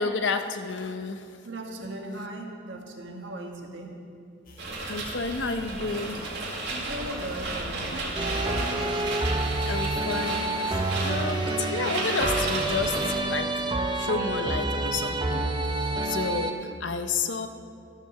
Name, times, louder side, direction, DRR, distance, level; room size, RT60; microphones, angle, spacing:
voice 1, 0.0-1.4 4.9-6.2 9.6-13.6 13.9-17.5, left 4 dB, 75° left, 8 dB, 0.7 m, -31 dB
voice 2, 1.4-4.0 6.7-9.0, right 1 dB, 80° right, 1 dB, 1.6 m, -39 dB
sound 1, 4.4-12.1, left 1 dB, 50° left, 1.4 m, -50 dB
sound 2, 4.6-13.2, right 2 dB, 60° right, 2.1 m, -33 dB
sound 3, 8.1-16.5, right 2 dB, 25° right, 0.6 m, -28 dB
13.5 x 6.8 x 6.7 m, 2.4 s
head